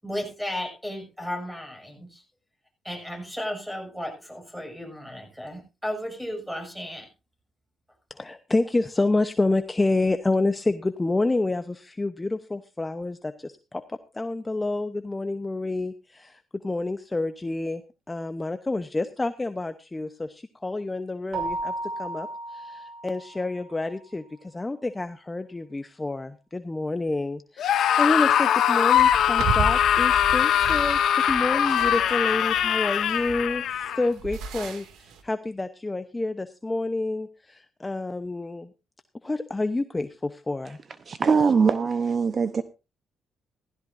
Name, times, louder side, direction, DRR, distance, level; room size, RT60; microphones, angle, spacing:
voice 1, 0.0-2.2 2.8-7.1, left 1 dB, ahead, 4 dB, 6.4 m, -34 dB
voice 2, 8.1-17.8 18.1-38.7 39.2-40.8, left 2 dB, 20° left, 10 dB, 0.8 m, -28 dB
Keyboard (musical), 21.3-23.8, right 2 dB, 60° right, 5.5 m, -34 dB
Screaming, 27.6-34.1, left 10 dB, 75° left, 1.8 m, -22 dB
sound 1, 29.0-35.2, right 5 dB, 85° right, 2.3 m, -35 dB
voice 3, 41.1-42.6, right 5 dB, 45° right, 12 dB, 0.8 m, -22 dB
16.0 x 15.0 x 2.6 m, 0.28 s
cardioid pair, 90°, 0 cm